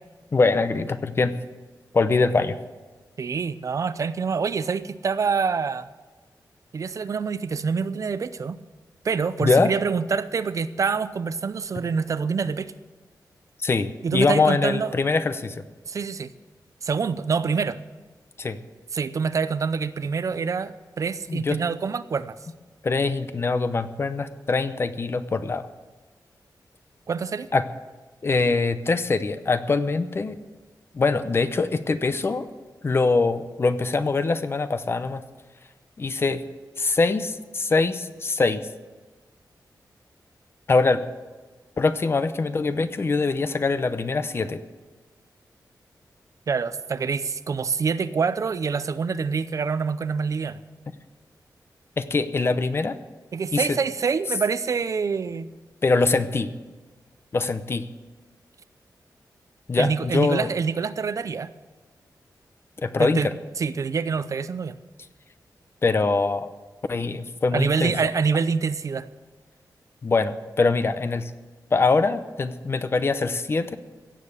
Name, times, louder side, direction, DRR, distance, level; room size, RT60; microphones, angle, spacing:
voice 1, 0.3-1.3 1.9-2.5 9.4-9.7 13.6-15.6 18.4-18.6 21.3-21.6 22.8-25.7 27.5-27.6 28.2-30.4 30.9-32.5 32.8-35.2 36.0-36.4 36.8-38.6 40.7-41.0 41.8-44.6 52.0-53.0 53.5-53.8 55.8-56.5 57.3-57.8 59.7-60.5 62.8-63.3 65.8-66.5 66.9-67.9 70.0-71.3 71.7-73.8, left 3 dB, 35° left, 11 dB, 0.7 m, -23 dB
voice 2, 3.2-5.9 6.7-8.6 9.0-12.7 14.0-14.9 15.9-16.3 16.8-17.8 18.9-22.4 27.1-27.5 46.5-50.6 53.3-55.5 59.8-61.5 63.0-64.8 67.5-69.1, right 5 dB, 50° right, 14 dB, 0.6 m, -26 dB
16.5 x 7.6 x 8.3 m, 1.3 s
wide cardioid pair, 170°, 7 cm